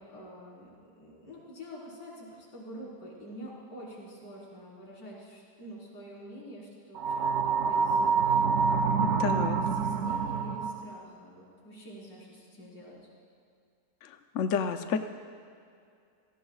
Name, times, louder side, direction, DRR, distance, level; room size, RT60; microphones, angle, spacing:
voice 1, 0.0-13.0, equal, 80° left, -5 dB, 5.0 m, -47 dB
sound 1, 7.0-10.9, right 5 dB, 70° right, 0.7 m, -27 dB
voice 2, 9.0-9.6 14.0-15.0, left 6 dB, 60° left, 7 dB, 0.9 m, -30 dB
29.5 x 18.0 x 2.4 m, 2.4 s
omnidirectional pair, 1.8 m